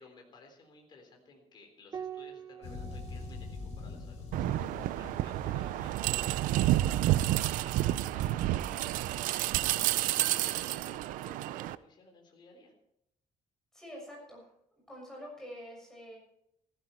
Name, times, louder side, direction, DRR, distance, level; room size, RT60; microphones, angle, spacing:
voice 1, 0.0-8.9 9.3-12.7, left 3 dB, 35° left, 2 dB, 3.8 m, -57 dB
Piano, 1.9-6.8 8.4-9.2, right 8 dB, 25° right, 0.6 m, -49 dB
sound 1, 2.6-7.5, left 4 dB, 55° left, 4.5 m, -45 dB
sound 2, 4.3-11.7, right 14 dB, 80° right, 0.6 m, -30 dB
voice 2, 13.7-14.5 14.9-16.2, equal, 5° left, -3 dB, 6.7 m, -46 dB
15.5 x 15.0 x 4.5 m, 0.76 s
cardioid pair, 180°, 14 cm